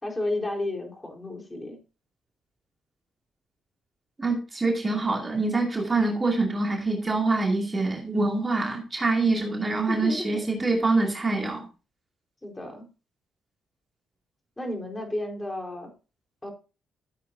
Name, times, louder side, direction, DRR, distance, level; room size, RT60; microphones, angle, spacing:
voice 1, 0.0-1.8 9.9-10.4 10.7-10.8 12.4-12.9 14.6-15.9 16.4-16.5, left 1 dB, 15° left, 1 dB, 4.1 m, -32 dB
voice 2, 4.2-11.7, right 3 dB, 25° right, 0 dB, 2.4 m, -25 dB
14.0 x 8.3 x 2.7 m, 0.32 s
cardioid pair, 90°, 0 cm